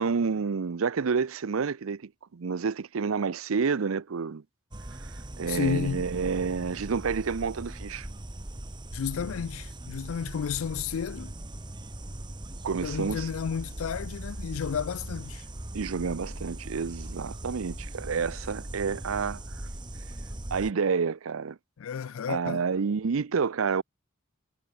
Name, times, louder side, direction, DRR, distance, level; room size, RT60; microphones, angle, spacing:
voice 1, 0.0-4.4 5.0-5.1 5.4-8.1 12.6-13.3 15.7-19.4 20.5-21.6 22.3-23.8, right 5 dB, 80° right, 0.6 m, -29 dB
sound 1, 4.7-20.7, right 1 dB, 20° right, 1.3 m, -40 dB
voice 2, 5.5-6.0 8.9-11.3 12.8-15.4 21.8-22.6, left 7 dB, 75° left, 0.4 m, -32 dB
head